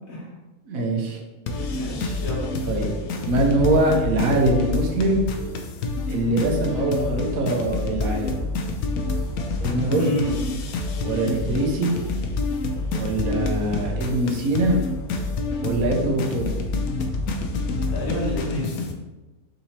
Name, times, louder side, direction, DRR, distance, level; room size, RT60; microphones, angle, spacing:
voice 1, 0.7-1.2 2.7-2.9 3.3-5.2 6.1-8.3 9.6-10.1 11.0-11.9 12.9-14.8 15.6-16.4, right 2 dB, 75° right, 0 dB, 1.3 m, -23 dB
sound 1, 1.5-18.9, left 3 dB, 85° left, 1.1 m, -27 dB
voice 2, 1.7-2.5 9.9-10.5 17.9-18.9, left 1 dB, 70° left, -3 dB, 1.5 m, -29 dB
4.0 x 2.9 x 4.2 m, 1.1 s
omnidirectional pair, 1.5 m